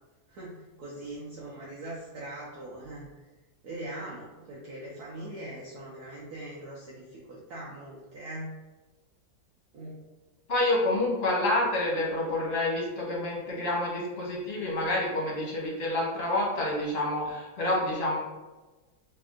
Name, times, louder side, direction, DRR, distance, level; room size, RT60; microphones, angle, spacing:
voice 1, 0.3-3.1 3.6-8.5 9.7-10.0, right 1 dB, 65° right, -5 dB, 1.0 m, -41 dB
voice 2, 10.5-18.2, left 1 dB, 45° left, -4 dB, 0.9 m, -28 dB
3.3 x 2.6 x 3.5 m, 1.2 s
omnidirectional pair, 2.1 m